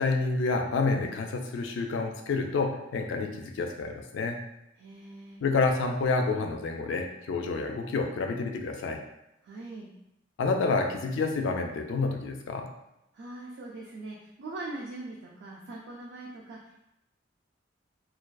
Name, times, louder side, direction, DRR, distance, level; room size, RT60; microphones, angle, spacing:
voice 1, 0.0-4.4 5.4-9.0 10.4-12.7, left 3 dB, 90° left, 3 dB, 0.3 m, -29 dB
voice 2, 4.8-5.4 9.4-9.9 13.1-16.8, right 2 dB, 70° right, -3 dB, 0.4 m, -41 dB
2.4 x 2.3 x 2.2 m, 0.86 s
head